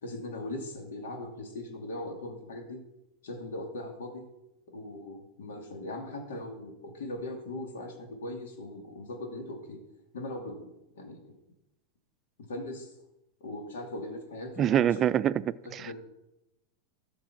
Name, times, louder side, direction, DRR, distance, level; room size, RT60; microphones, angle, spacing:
voice 1, 0.0-2.8 3.2-4.2 4.7-9.8 10.1-10.7 10.9-11.4 12.5-12.9 13.4-15.1 15.8-15.9, left 1 dB, 85° left, 3 dB, 2.5 m, -39 dB
voice 2, 14.6-15.9, right 10 dB, 35° right, 18 dB, 0.4 m, -26 dB
13.5 x 5.2 x 6.0 m, 0.91 s
hypercardioid pair, 115°, 0 cm